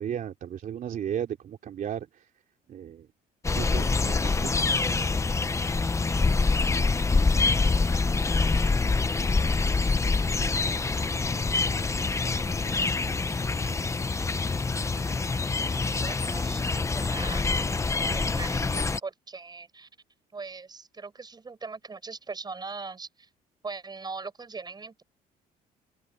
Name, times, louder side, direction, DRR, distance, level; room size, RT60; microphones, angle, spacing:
voice 1, 0.0-2.3 2.7-3.1 3.5-4.7, right 9 dB, 55° right, 2.9 m, -35 dB
sound 1, 3.4-19.0, left 3 dB, 15° left, 0.9 m, -25 dB
voice 2, 7.5-9.3 11.8-11.9 13.0-13.3 14.9-17.5 18.1-19.9 20.3-23.1 23.6-25.0, right 4 dB, 25° right, 5.2 m, -42 dB
open air
cardioid pair, 110°, 17 cm